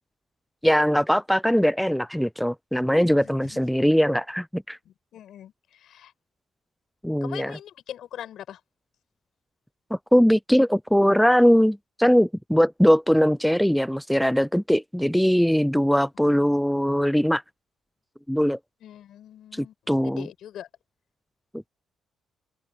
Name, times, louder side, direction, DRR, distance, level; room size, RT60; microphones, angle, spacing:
voice 1, 0.6-4.8 7.0-7.5 9.9-17.4 18.3-18.6 19.5-20.3, equal, ahead, 0.5 m, -21 dB
voice 2, 2.9-3.6 4.9-6.1 7.2-8.6 16.2-16.4 18.8-20.7, left 11 dB, 75° left, 7.1 m, -42 dB
cardioid pair, 90°, 0 cm